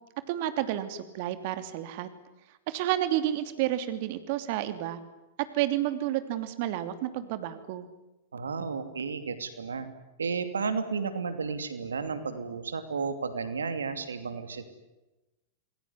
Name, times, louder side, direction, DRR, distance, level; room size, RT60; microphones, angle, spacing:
voice 1, 0.3-2.1 2.7-5.0 5.5-7.9, right 13 dB, 55° right, 10 dB, 2.9 m, -30 dB
voice 2, 8.3-9.9 10.2-14.7, right 5 dB, 85° right, 10 dB, 2.8 m, -33 dB
28.5 x 21.5 x 9.8 m, 1.0 s
hypercardioid pair, 100°, 0 cm